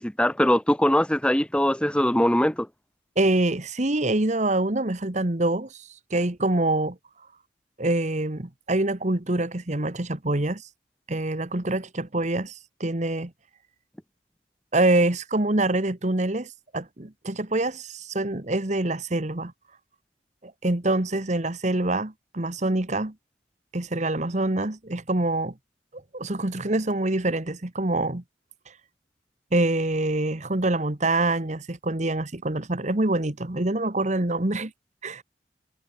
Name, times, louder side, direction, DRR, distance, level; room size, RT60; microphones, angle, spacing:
voice 1, 0.0-2.7, left 1 dB, 5° left, 1.3 m, -21 dB
voice 2, 3.2-7.0 7.8-10.7 11.1-13.3 14.7-19.5 20.4-23.1 23.7-25.5 25.9-28.2 29.5-34.7 35.0-35.2, right 2 dB, 40° right, 1.4 m, -25 dB
head